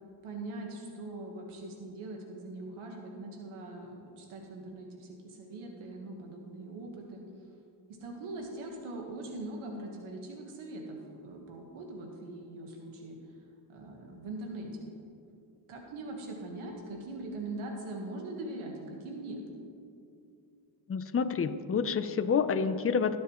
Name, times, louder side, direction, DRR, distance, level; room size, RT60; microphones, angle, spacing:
voice 1, 0.2-7.2 7.9-13.2 13.7-14.9 15.7-19.4, right 2 dB, 90° right, 1 dB, 1.6 m, -41 dB
voice 2, 20.9-23.2, left 6 dB, 30° left, 11 dB, 0.7 m, -28 dB
19.0 x 7.3 x 3.1 m, 2.5 s
cardioid pair, 70°, 48 cm